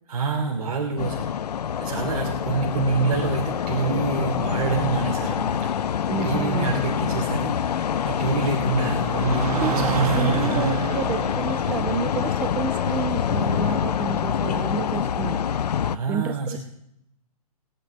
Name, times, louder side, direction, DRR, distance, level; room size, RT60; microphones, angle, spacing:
voice 1, 0.1-1.4 1.8-5.6 6.2-7.5 8.0-9.5 9.9-10.8 15.9-16.6, right 4 dB, 85° right, -1 dB, 3.1 m, -26 dB
sound 1, 1.0-16.0, left 8 dB, 85° left, 0.7 m, -26 dB
sound 2, 4.9-15.5, right 8 dB, 70° right, 1.6 m, -33 dB
voice 2, 6.1-6.9 9.6-9.8 10.2-15.4 16.1-16.6, right 8 dB, 10° right, 13 dB, 0.4 m, -30 dB
21.0 x 10.5 x 3.4 m, 0.77 s
hypercardioid pair, 160°, 20 cm